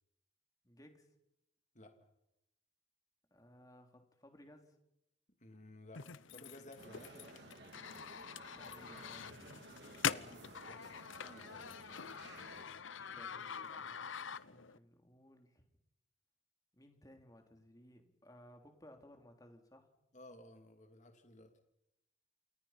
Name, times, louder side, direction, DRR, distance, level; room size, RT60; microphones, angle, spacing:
voice 1, 0.6-1.1 3.3-4.8 8.6-9.3 12.9-15.7 16.7-19.9, equal, 20° left, 5 dB, 3.2 m, -60 dB
voice 2, 5.4-6.0 6.3-7.4 10.0-10.9 11.2-12.0 20.1-21.5, left 1 dB, 40° left, 6 dB, 2.7 m, -56 dB
sound 1, 5.9-14.8, left 7 dB, 85° left, 0.9 m, -44 dB
sound 2, 6.8-12.6, right 2 dB, 60° right, 3.7 m, -55 dB
28.5 x 28.5 x 5.8 m, 0.85 s
head